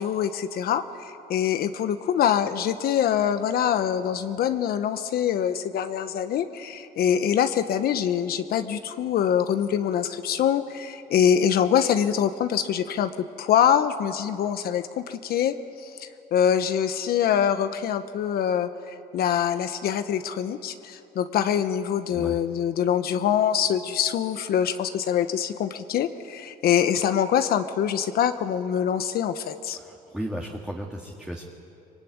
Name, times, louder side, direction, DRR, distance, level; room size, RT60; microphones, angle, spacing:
voice 1, 0.0-13.1 13.4-29.8, left 9 dB, 65° left, 9 dB, 1.0 m, -24 dB
voice 2, 29.8-31.4, equal, 5° right, 0 dB, 2.1 m, -35 dB
24.5 x 21.5 x 9.6 m, 2.8 s
cardioid pair, 110°, 17 cm